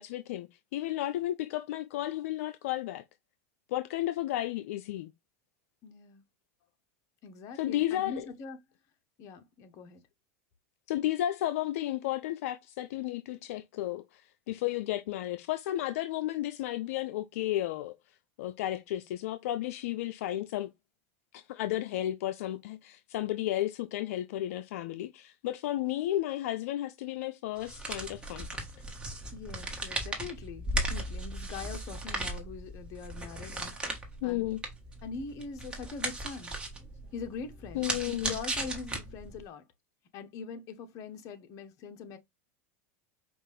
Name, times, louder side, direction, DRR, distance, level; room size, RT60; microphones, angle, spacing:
voice 1, 0.0-3.0 3.7-5.1 7.5-8.3 10.9-18.0 18.4-20.7 21.3-28.6 34.2-34.6 37.7-38.4, left 14 dB, 75° left, 0.4 m, -33 dB
voice 2, 5.8-6.2 7.2-8.6 9.2-10.0 29.3-34.5 35.0-36.5 37.1-39.6 40.1-42.2, left 5 dB, 45° left, 0.9 m, -43 dB
sound 1, 27.6-39.4, right 1 dB, 10° right, 1.3 m, -37 dB
5.1 x 2.5 x 3.2 m
supercardioid pair, 125°, 8 cm